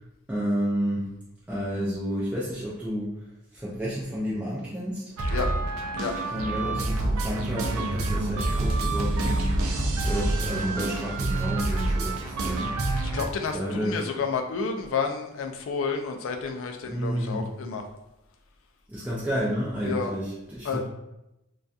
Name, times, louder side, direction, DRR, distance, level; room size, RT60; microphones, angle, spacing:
voice 1, 0.3-1.1 1.5-3.1 3.5-5.0 6.3-9.6 10.0-12.7 13.5-14.1 16.8-17.5 18.9-20.8, equal, 5° right, -8 dB, 0.3 m, -30 dB
sound 1, 5.2-13.2, right 2 dB, 90° right, 0.4 m, -27 dB
voice 2, 13.1-17.8 19.8-20.1 20.6-20.8, left 5 dB, 70° left, 4 dB, 0.3 m, -30 dB
2.5 x 2.3 x 2.3 m, 0.89 s
head